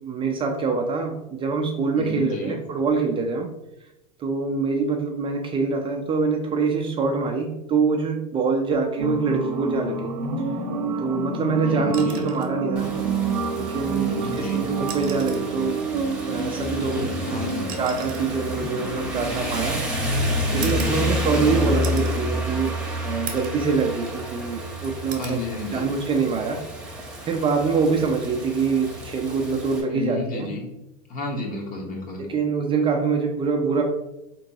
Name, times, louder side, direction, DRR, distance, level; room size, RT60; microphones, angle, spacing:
voice 1, 0.0-3.5 4.2-10.1 11.0-12.9 13.5-15.8 16.3-17.4 17.8-19.8 20.5-25.4 25.7-26.9 27.3-30.5 32.2-33.8, right 4 dB, 25° right, 2 dB, 0.4 m, -25 dB
voice 2, 2.0-2.6 11.6-12.3 13.9-14.7 16.8-17.8 20.5-21.1 25.2-25.9 29.9-30.7 31.1-32.3, left 3 dB, 40° left, 0 dB, 1.1 m, -32 dB
sound 1, 9.0-20.8, right 4 dB, 85° right, 0.6 m, -29 dB
sound 2, 11.9-12.6 14.0-14.1 14.8-15.6 16.7-19.8 20.6-21.5 21.8-22.2 22.7-22.8 23.3-23.7 24.1-24.7 25.1-25.4 26.9-27.1, right 7 dB, 45° right, 0.7 m, -39 dB
Rain, 12.8-29.8, equal, 5° right, 0.8 m, -30 dB
3.7 x 3.0 x 2.7 m, 0.91 s
supercardioid pair, 115°, 20 cm